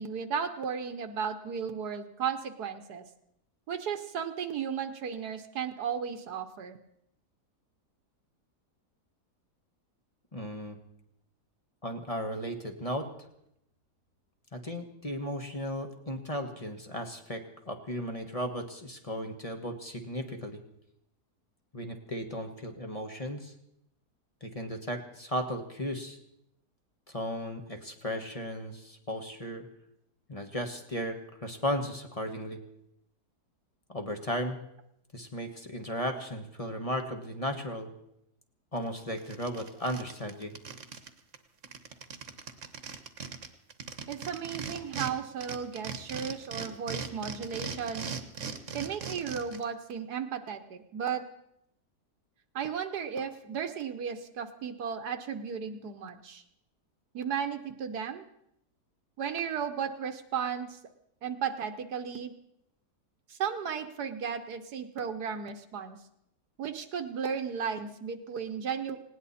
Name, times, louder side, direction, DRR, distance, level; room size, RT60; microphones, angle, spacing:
voice 1, 0.0-3.0 3.7-6.8 44.1-48.1 48.7-51.2 52.5-56.4 57.1-58.2 59.2-60.8 61.2-62.3 63.3-66.0 66.6-69.0, right 7 dB, 75° right, 8 dB, 1.5 m, -35 dB
voice 2, 10.3-10.8 11.8-13.1 14.5-20.6 21.7-23.5 24.4-26.2 27.1-29.6 30.3-32.6 33.9-34.6 35.1-37.9 38.7-40.5, equal, 20° left, 4 dB, 1.4 m, -35 dB
sound 1, 38.8-38.9 39.2-41.1 41.3-41.4 41.6-45.1 45.4-49.6, right 6 dB, 50° right, 1.4 m, -39 dB
19.0 x 18.0 x 4.2 m, 0.78 s
omnidirectional pair, 1.7 m